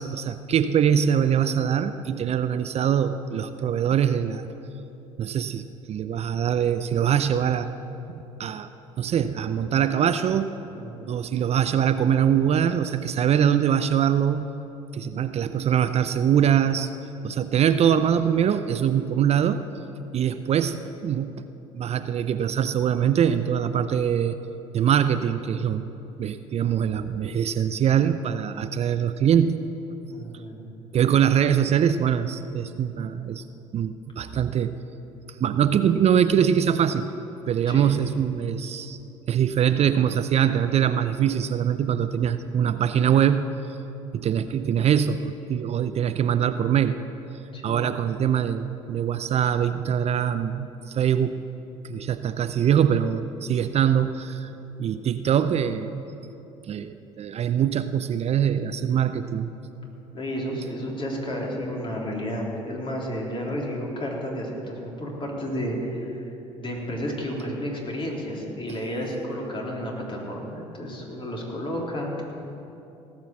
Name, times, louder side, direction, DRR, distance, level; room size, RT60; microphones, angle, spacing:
voice 1, 0.0-4.5 5.2-7.7 8.1-8.7 9.0-10.5 11.1-14.5 14.9-16.9 17.2-19.7 20.1-21.4 21.7-24.4 24.7-25.9 26.2-29.6 30.9-33.4 33.7-34.8 35.3-37.1 37.5-39.0 39.3-43.5 44.1-47.0 47.6-51.4 51.8-54.5 54.8-56.0 56.7-59.5, right 9 dB, 45° right, 11 dB, 0.5 m, -23 dB
voice 2, 10.8-11.1 30.1-30.7 37.7-37.9 47.5-47.9 60.1-66.2 66.6-72.2, equal, 35° left, -2 dB, 3.6 m, -31 dB
18.0 x 6.2 x 7.3 m, 2.9 s
hypercardioid pair, 65°, 15 cm